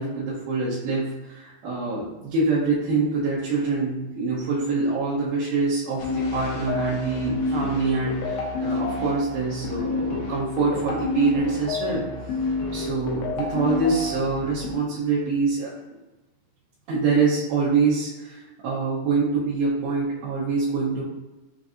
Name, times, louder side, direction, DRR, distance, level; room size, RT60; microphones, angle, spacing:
voice 1, 0.0-12.0 12.7-15.7 16.9-21.0, right 4 dB, 75° right, -8 dB, 2.5 m, -25 dB
sound 1, 6.0-14.7, left 3 dB, 80° left, 2.3 m, -29 dB
6.9 x 2.6 x 2.5 m, 1.1 s
omnidirectional pair, 5.3 m